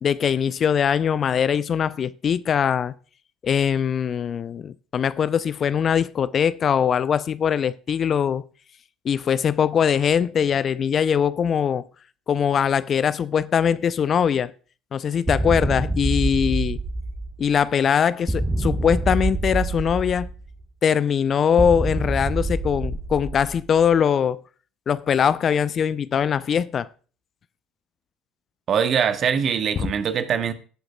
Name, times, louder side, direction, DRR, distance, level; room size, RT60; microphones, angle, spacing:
voice 1, 0.0-2.9 3.4-8.5 9.0-11.8 12.3-14.5 14.9-16.8 17.4-20.3 20.8-24.4 24.9-26.9, left 8 dB, 40° left, 0.4 m, -22 dB
sound 1, 15.3-17.6 18.3-20.6 21.6-23.8, right 2 dB, 10° right, 1.2 m, -26 dB
voice 2, 28.7-30.5, right 7 dB, 45° right, 1.1 m, -22 dB
18.0 x 7.7 x 2.3 m
figure-of-eight pair, 60°, 0 cm